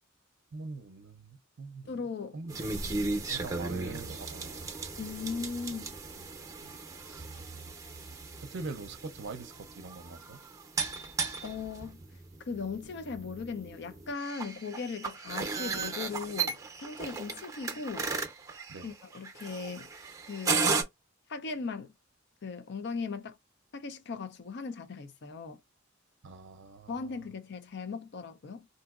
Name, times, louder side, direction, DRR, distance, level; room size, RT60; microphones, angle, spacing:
voice 1, 0.5-2.1 2.3-4.7 6.1-6.8 7.0-7.3 8.4-10.4 18.7-18.9 26.2-27.3, right 3 dB, 60° right, 0.5 m, -44 dB
voice 2, 1.9-2.4 5.0-6.0 11.4-12.0 12.5-18.1 18.8-19.9 20.3-20.8 21.3-21.9 22.4-23.4 23.7-25.6 26.9-28.7, left 4 dB, 60° left, 0.5 m, -38 dB
sound 1, 2.5-20.8, right 4 dB, 15° right, 0.6 m, -36 dB
3.8 x 2.6 x 2.3 m
head